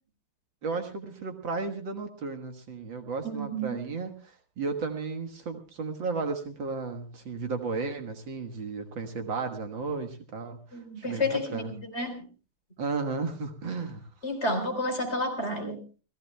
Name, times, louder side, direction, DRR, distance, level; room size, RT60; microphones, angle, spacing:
voice 1, 0.6-11.7 12.8-14.1, right 4 dB, 65° right, 6 dB, 2.2 m, -34 dB
voice 2, 3.2-3.9 10.7-12.3 14.2-15.8, left 1 dB, 30° left, 3 dB, 4.3 m, -31 dB
29.5 x 16.0 x 2.2 m, 0.35 s
omnidirectional pair, 2.3 m